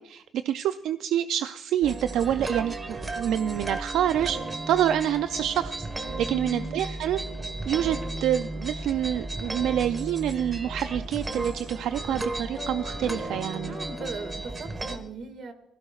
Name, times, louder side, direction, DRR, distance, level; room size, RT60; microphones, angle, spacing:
voice 1, 0.0-4.4 4.7-5.9 6.2-7.2 7.7-13.8, right 10 dB, 85° right, 11 dB, 0.4 m, -27 dB
sound 1, 1.8-15.0, right 2 dB, 25° right, 1.4 m, -34 dB
voice 2, 6.3-6.7 13.6-15.5, right 3 dB, 60° right, 8 dB, 2.0 m, -39 dB
sound 2, 7.6-14.3, left 5 dB, 60° left, 3.6 m, -45 dB
20.5 x 16.0 x 2.4 m, 0.94 s
cardioid pair, 90°, 0 cm